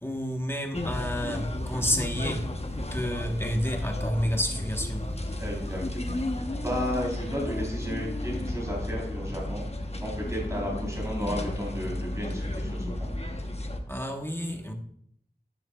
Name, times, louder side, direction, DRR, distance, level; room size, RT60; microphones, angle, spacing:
voice 1, 0.0-5.4 13.9-14.7, equal, 15° left, 1.2 m, -30 dB
sound 1, 0.7-13.8, left 1 dB, 35° left, 1.0 m, -33 dB
voice 2, 5.4-6.2 6.6-9.7 10.0-13.1, equal, 15° right, 3.8 m, -33 dB
10.0 x 9.9 x 2.4 m
wide cardioid pair, 40°, 18 cm